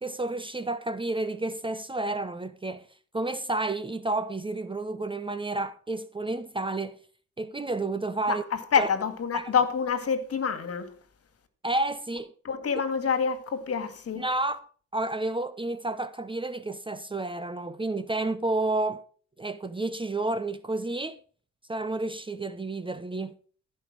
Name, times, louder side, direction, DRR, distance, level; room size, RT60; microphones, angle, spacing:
voice 1, 0.0-2.8 3.1-7.0 7.4-8.4 8.8-8.9 9.3-9.5 11.6-12.3 14.2-14.6 14.9-19.0 19.4-21.2 21.7-23.4, right 2 dB, 15° right, 0.8 m, -30 dB
voice 2, 8.3-10.9 12.4-14.2, left 6 dB, 50° left, 2.2 m, -27 dB
15.0 x 5.5 x 6.1 m
cardioid pair, 90°, 30 cm